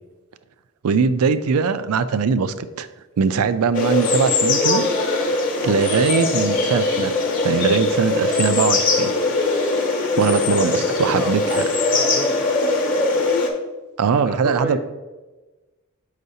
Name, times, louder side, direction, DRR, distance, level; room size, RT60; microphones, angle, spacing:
voice 1, 0.8-2.9 3.2-7.1 7.4-9.1 10.2-11.6 14.0-14.8, right 5 dB, 85° right, 13 dB, 0.4 m, -21 dB
sound 1, 3.7-13.5, left 3 dB, 40° left, 0.9 m, -21 dB
voice 2, 10.3-12.5 14.1-14.8, right 1 dB, 5° right, 3 dB, 0.6 m, -32 dB
6.5 x 5.5 x 2.7 m, 1.2 s
head